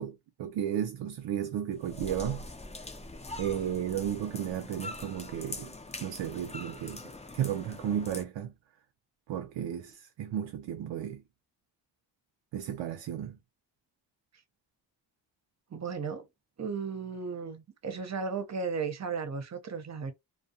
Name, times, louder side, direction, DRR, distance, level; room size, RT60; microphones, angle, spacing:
voice 1, 0.0-2.5 3.4-5.7 6.0-7.0 7.3-8.5 9.3-11.2 12.5-13.4, right 10 dB, 75° right, 0.5 m, -33 dB
sound 1, 1.7-8.2, left 2 dB, 15° left, 0.6 m, -43 dB
voice 2, 15.7-16.2 16.6-20.1, right 5 dB, 40° right, 0.7 m, -35 dB
2.3 x 2.2 x 2.7 m
cardioid pair, 55°, 45 cm